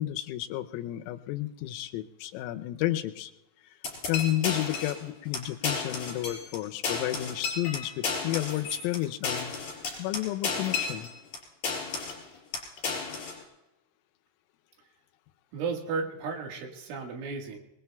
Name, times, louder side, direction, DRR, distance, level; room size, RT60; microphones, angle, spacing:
voice 1, 0.0-3.3 4.1-9.5 10.0-11.1, left 14 dB, 85° left, 9 dB, 3.3 m, -31 dB
sound 1, 3.8-5.0 5.3-5.4 5.6-6.6 6.8-11.4 11.6-12.2 12.5-13.4, left 4 dB, 45° left, 6.2 m, -32 dB
voice 2, 4.4-4.8 15.5-17.6, right 4 dB, 70° right, 1 dB, 4.0 m, -34 dB
25.5 x 22.5 x 2.3 m, 0.97 s
omnidirectional pair, 5.8 m